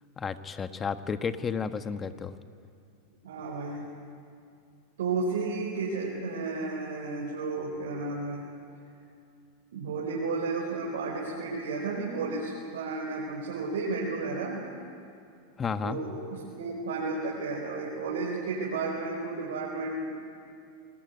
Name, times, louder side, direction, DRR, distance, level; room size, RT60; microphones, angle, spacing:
voice 1, 0.2-2.3 15.6-16.0, left 6 dB, 25° left, 10 dB, 1.4 m, -32 dB
voice 2, 3.2-3.9 5.0-8.5 9.7-14.6 15.8-20.2, right 3 dB, 80° right, -2 dB, 4.4 m, -32 dB
25.0 x 19.0 x 9.6 m, 2.4 s
hypercardioid pair, 105°, 0 cm